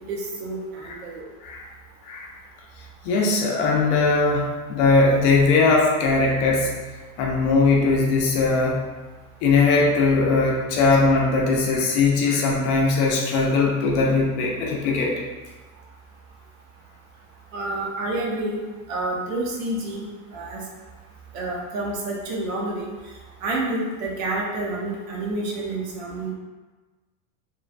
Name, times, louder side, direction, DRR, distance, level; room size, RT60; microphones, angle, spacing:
voice 1, 0.1-1.3 17.5-18.6 18.9-20.1 20.3-20.6 21.3-22.9 23.4-26.3, right 2 dB, 65° right, -2 dB, 0.8 m, -28 dB
voice 2, 3.0-6.7 7.2-8.9 9.4-15.2, left 3 dB, 50° left, -2 dB, 0.6 m, -20 dB
3.1 x 2.2 x 2.4 m, 1.3 s
supercardioid pair, 145°, 43 cm